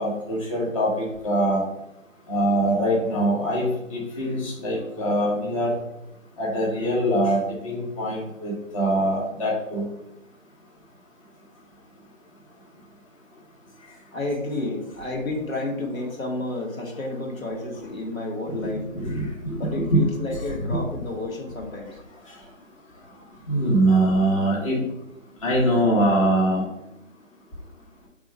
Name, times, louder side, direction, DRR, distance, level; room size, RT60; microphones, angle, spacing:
voice 1, 0.0-1.6 2.3-5.7 6.4-7.4 7.6-9.8 18.5-20.0 20.7-20.8 23.5-24.8 25.4-26.6, right 1 dB, 25° left, -4 dB, 1.3 m, -23 dB
voice 2, 14.1-18.9 19.6-21.9, left 2 dB, 85° left, -1 dB, 2.0 m, -31 dB
5.0 x 3.6 x 5.3 m, 0.84 s
figure-of-eight pair, 160°, 40 cm